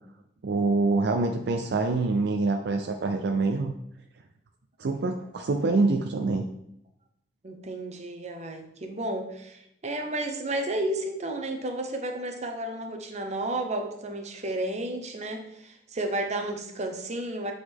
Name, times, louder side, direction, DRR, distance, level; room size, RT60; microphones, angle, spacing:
voice 1, 0.4-3.7 4.8-6.5, right 3 dB, 70° right, 4 dB, 0.4 m, -25 dB
voice 2, 7.4-17.5, right 1 dB, 40° right, 4 dB, 0.8 m, -32 dB
7.9 x 3.9 x 3.5 m, 0.78 s
head